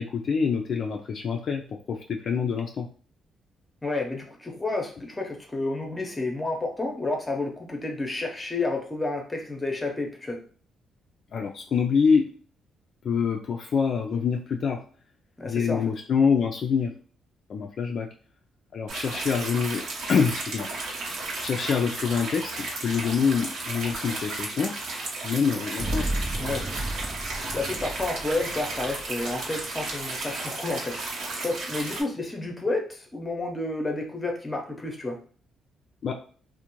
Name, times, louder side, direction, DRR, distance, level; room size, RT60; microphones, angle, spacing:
voice 1, 0.0-1.6 1.9-2.9 11.3-12.3 13.0-14.8 15.4-16.9 17.5-18.1 18.7-19.8 20.1-20.7 21.4-24.7 25.2-26.1 36.0-36.1, left 6 dB, 55° left, 2 dB, 0.3 m, -25 dB
voice 2, 3.8-10.4 15.4-15.8 26.3-26.7 27.5-31.0 31.4-35.2, left 2 dB, 20° left, 2 dB, 0.7 m, -30 dB
sound 1, 18.9-32.0, right 2 dB, 70° right, 0.8 m, -34 dB
sound 2, 25.8-29.8, right 1 dB, 30° right, 0.5 m, -33 dB
2.5 x 2.1 x 2.9 m, 0.43 s
cardioid pair, 90°, 0 cm